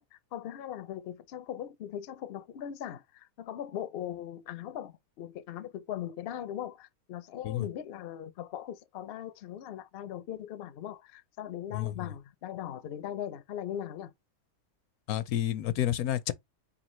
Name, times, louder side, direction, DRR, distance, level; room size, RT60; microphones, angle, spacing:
voice 1, 0.0-14.1, left 10 dB, 65° left, 0.6 m, -40 dB
voice 2, 11.7-12.1 15.1-16.3, left 12 dB, 85° left, 1.1 m, -30 dB
4.2 x 3.6 x 3.1 m
omnidirectional pair, 1.5 m